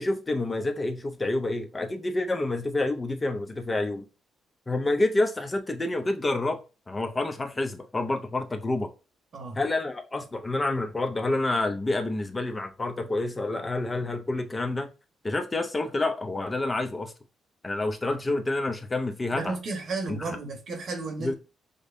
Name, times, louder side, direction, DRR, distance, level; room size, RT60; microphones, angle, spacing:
voice 1, 0.0-4.0 4.7-6.6 6.9-8.9 9.5-14.9 15.2-17.1 17.6-19.6 20.1-20.4 21.2-21.3, left 2 dB, 20° left, 0.5 m, -28 dB
voice 2, 19.3-21.3, right 3 dB, 55° right, 1.0 m, -33 dB
5.1 x 2.1 x 2.5 m
cardioid pair, 90°, 0 cm